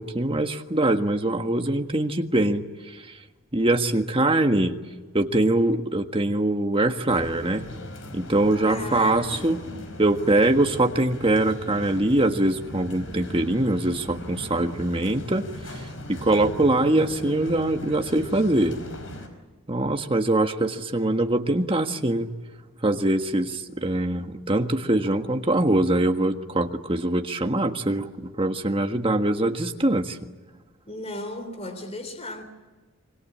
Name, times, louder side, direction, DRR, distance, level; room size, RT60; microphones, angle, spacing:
voice 1, 0.0-2.6 3.5-4.8 5.1-7.6 8.1-9.6 10.0-15.8 16.1-18.8 19.7-22.3 22.8-30.2, right 1 dB, 25° right, 1.5 m, -23 dB
sound 1, 7.1-19.3, equal, 65° left, 5.0 m, -39 dB
voice 2, 8.7-10.0 30.9-32.4, left 1 dB, 30° left, 3.4 m, -36 dB
25.5 x 23.5 x 8.7 m
head